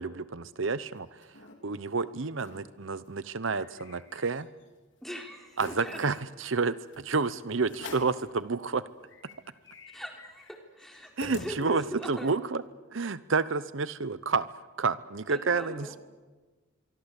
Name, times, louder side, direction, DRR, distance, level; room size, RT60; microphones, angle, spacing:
voice 1, 0.0-1.4 1.6-4.5 5.6-8.8 11.2-12.6 12.9-14.5 14.8-16.0, right 4 dB, 70° right, 15 dB, 0.8 m, -30 dB
sound 1, 0.7-1.6 2.0-2.1 2.3-2.7 3.1-4.6 5.0-5.1 5.5-6.2 6.9-7.1 7.7-8.2 8.7-8.8 9.0-12.0, left 3 dB, 65° left, 3.8 m, -47 dB
voice 2, 5.0-6.0 9.9-12.4 15.3-16.0, equal, ahead, 3 dB, 3.7 m, -41 dB
25.0 x 24.0 x 8.2 m, 1.3 s
head